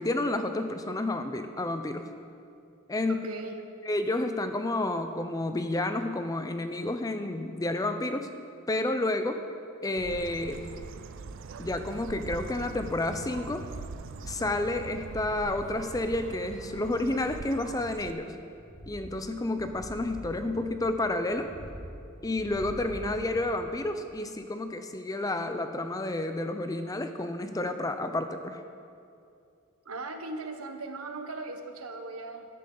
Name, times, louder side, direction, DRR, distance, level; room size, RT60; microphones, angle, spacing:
voice 1, 0.0-2.1 2.9-3.3 3.9-8.3 8.7-9.4 9.8-10.6 11.6-13.6 14.2-18.3 18.9-21.5 22.2-28.6, left 2 dB, 15° left, 8 dB, 0.5 m, -30 dB
voice 2, 3.1-3.7 23.0-23.2 29.8-32.5, right 3 dB, 80° right, 5 dB, 1.1 m, -38 dB
Bird, 10.0-18.1, right 4 dB, 60° right, 0.4 m, -42 dB
sound 1, 18.5-23.8 24.2-24.3, equal, 40° left, 2.5 m, -46 dB
13.5 x 11.5 x 3.9 m, 2.5 s
head